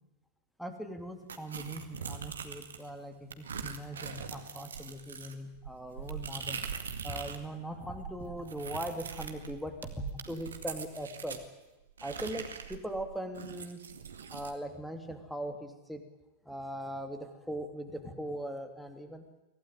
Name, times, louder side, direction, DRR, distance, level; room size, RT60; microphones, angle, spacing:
voice 1, 0.6-6.7 7.0-11.4 12.0-13.8 14.3-16.0 16.4-19.2, right 1 dB, ahead, 7 dB, 2.6 m, -40 dB
sound 1, 1.3-2.9 3.3-7.5 7.7-11.4 12.0-14.6, right 6 dB, 70° right, 2.1 m, -42 dB
24.0 x 16.5 x 9.7 m, 1.0 s
figure-of-eight pair, 90°, 0 cm